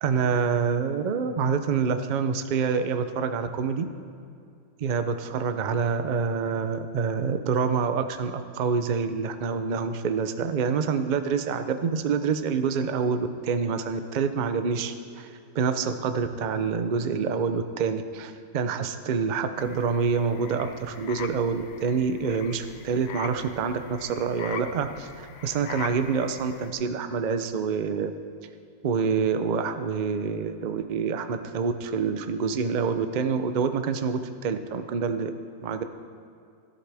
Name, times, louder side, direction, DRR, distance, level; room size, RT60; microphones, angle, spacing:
voice 1, 0.0-3.9 4.8-15.3 15.5-28.1 28.8-35.3 35.6-35.8, right 5 dB, 65° right, 8 dB, 0.4 m, -27 dB
sound 1, 19.6-26.7, left 7 dB, 65° left, 1.0 m, -42 dB
14.5 x 12.5 x 3.4 m, 2.4 s
omnidirectional pair, 1.7 m